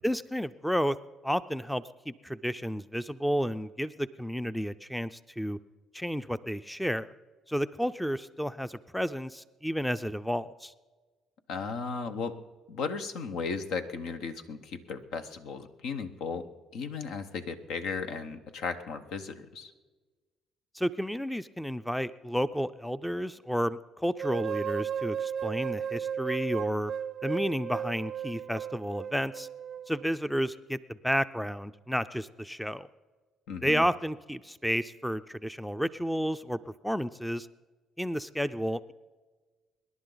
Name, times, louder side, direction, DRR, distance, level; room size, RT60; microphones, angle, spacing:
voice 1, 0.0-1.0 1.2-5.6 5.9-7.1 7.5-10.7 20.7-26.9 27.2-29.5 29.9-32.9 33.6-36.6 36.8-37.5 38.0-38.9, equal, ahead, 14 dB, 0.5 m, -31 dB
voice 2, 11.5-12.4 12.7-16.5 16.7-19.7 33.5-33.8, left 5 dB, 75° left, 8 dB, 1.1 m, -35 dB
sound 1, 24.2-30.2, right 8 dB, 55° right, 0.4 m, -35 dB
25.5 x 11.0 x 4.0 m, 1.3 s
supercardioid pair, 75°, 0 cm